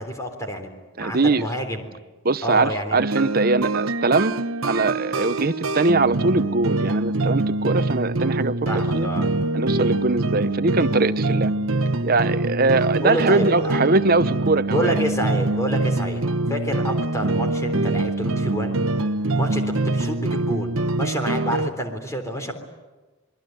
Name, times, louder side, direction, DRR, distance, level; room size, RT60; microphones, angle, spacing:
voice 1, 0.0-1.9 2.4-3.0 8.7-9.3 13.0-13.8 14.7-16.2 16.5-18.8 19.3-22.5, equal, 15° left, 5 dB, 3.7 m, -28 dB
voice 2, 1.0-1.5 2.2-4.3 4.6-9.1 9.5-11.5 12.0-15.0, right 3 dB, 45° right, 13 dB, 0.8 m, -22 dB
sound 1, 3.0-21.7, right 2 dB, 75° right, 1.0 m, -24 dB
28.0 x 21.5 x 9.3 m, 1.2 s
head